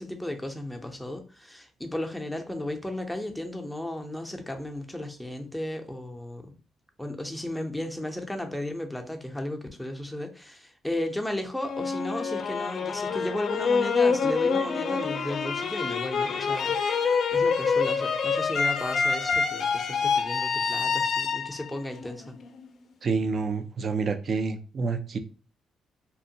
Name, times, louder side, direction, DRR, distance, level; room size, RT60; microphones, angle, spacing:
voice 1, 0.0-6.6 7.0-22.4, left 1 dB, 5° left, 0.5 m, -35 dB
sound 1, 11.6-22.6, left 5 dB, 60° left, 0.4 m, -26 dB
voice 2, 23.0-25.2, right 4 dB, 50° right, 0.4 m, -28 dB
2.8 x 2.2 x 2.7 m
cardioid pair, 90°, 0 cm